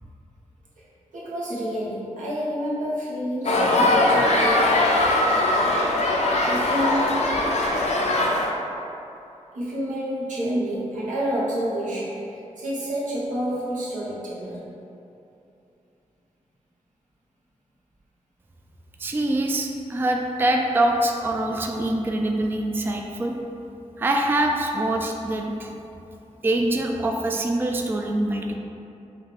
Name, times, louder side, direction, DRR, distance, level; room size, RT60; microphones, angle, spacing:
voice 1, 1.1-4.7 6.4-7.3 9.5-14.7, equal, 85° right, -8 dB, 1.2 m, -28 dB
sound 1, 3.5-8.5, left 2 dB, 60° left, 0.5 m, -21 dB
voice 2, 19.0-23.3 24.0-25.7 26.4-28.6, right 1 dB, 15° right, 1 dB, 0.3 m, -24 dB
5.6 x 2.3 x 3.3 m, 2.8 s
wide cardioid pair, 85°, 13 cm